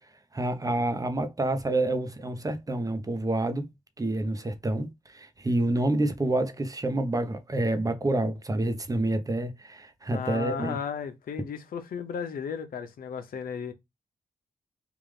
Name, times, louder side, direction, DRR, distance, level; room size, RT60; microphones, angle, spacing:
voice 1, 0.3-3.7 4.0-10.8, right 2 dB, 25° right, 0.8 m, -28 dB
voice 2, 10.1-13.7, left 6 dB, 80° left, 0.7 m, -34 dB
3.4 x 2.5 x 3.4 m
cardioid pair, 65°, 15 cm